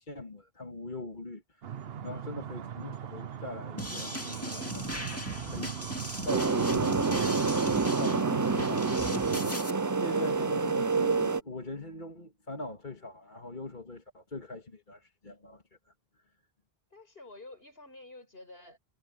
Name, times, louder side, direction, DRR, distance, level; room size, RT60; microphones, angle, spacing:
voice 1, 0.0-6.0 6.2-7.4 7.9-9.0 10.0-15.9, left 2 dB, 50° left, 2.4 m, -42 dB
sound 1, 1.6-9.5, right 9 dB, 70° right, 1.0 m, -39 dB
sound 2, 3.8-9.7, left 1 dB, 15° left, 2.3 m, -38 dB
sound 3, 6.3-11.4, right 4 dB, 25° right, 0.4 m, -28 dB
voice 2, 16.9-18.8, left 2 dB, 65° left, 5.6 m, -50 dB
omnidirectional pair, 1.1 m